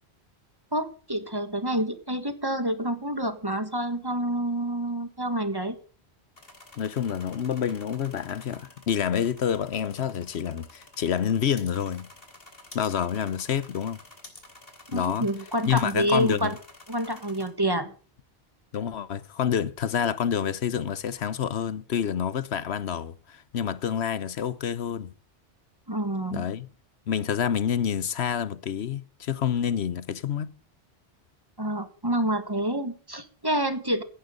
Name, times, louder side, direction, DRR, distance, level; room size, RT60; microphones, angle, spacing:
voice 1, 0.7-5.8 14.9-16.5 16.9-17.9 25.9-26.5 31.6-34.0, right 1 dB, 20° right, 1.7 m, -28 dB
sound 1, 6.4-17.5, left 2 dB, 60° left, 3.7 m, -50 dB
voice 2, 6.8-12.1 12.7-14.0 14.9-15.3 15.7-16.5 18.7-25.1 26.3-26.7 27.1-30.5, left 8 dB, 75° left, 1.1 m, -28 dB
16.5 x 11.5 x 3.9 m
omnidirectional pair, 1.1 m